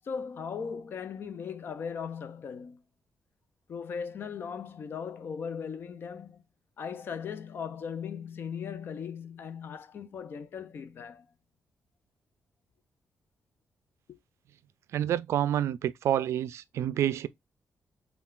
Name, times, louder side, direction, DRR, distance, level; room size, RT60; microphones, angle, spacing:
voice 1, 0.0-2.8 3.7-6.4 6.8-11.3 14.1-14.2, left 6 dB, 50° left, 0.5 m, -38 dB
voice 2, 14.9-17.3, right 11 dB, 85° right, 0.3 m, -28 dB
5.6 x 2.3 x 2.3 m
wide cardioid pair, 170°, 5 cm